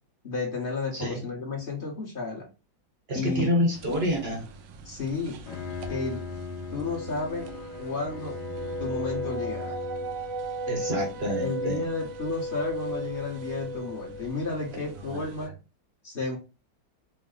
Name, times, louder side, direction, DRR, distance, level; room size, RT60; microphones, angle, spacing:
voice 1, 0.2-2.4 3.1-3.5 4.8-5.4 5.9-6.2 6.7-7.5 7.8-8.4 8.8-9.8 11.4-15.5 16.0-16.4, left 4 dB, 35° left, -2 dB, 1.0 m, -32 dB
voice 2, 0.9-1.3 3.1-4.4 10.7-11.8 14.7-15.3, equal, 45° right, 1 dB, 0.9 m, -28 dB
sound 1, 3.7-15.5, right 1 dB, 75° right, 1.3 m, -36 dB
Bowed string instrument, 5.3-10.3, left 4 dB, 70° left, 1.1 m, -39 dB
4.1 x 2.1 x 3.7 m, 0.30 s
omnidirectional pair, 2.0 m